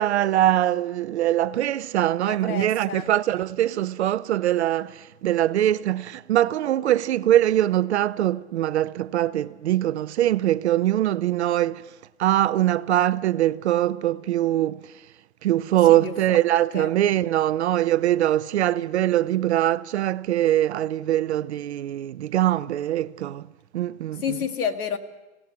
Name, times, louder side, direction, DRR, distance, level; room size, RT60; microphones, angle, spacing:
voice 1, 0.0-11.8 12.2-14.9 15.4-23.5 23.7-24.4, right 13 dB, 50° right, 0.6 m, -22 dB
voice 2, 2.2-3.1 15.9-16.4 16.7-16.9 19.0-19.1 24.2-25.0, left 7 dB, 85° left, 2.0 m, -30 dB
28.0 x 17.0 x 5.9 m
hypercardioid pair, 160°, 43 cm